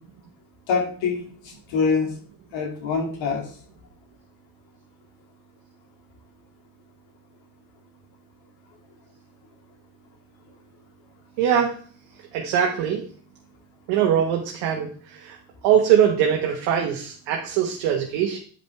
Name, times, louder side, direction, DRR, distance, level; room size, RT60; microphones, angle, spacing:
voice 1, 0.7-2.1 2.5-3.5, left 5 dB, 70° left, 2 dB, 2.3 m, -25 dB
voice 2, 11.4-11.8 12.3-13.0 13.9-15.4 15.6-18.4, right 9 dB, 80° right, 1 dB, 1.3 m, -22 dB
9.3 x 5.2 x 3.4 m, 0.43 s
supercardioid pair, 70°, 46 cm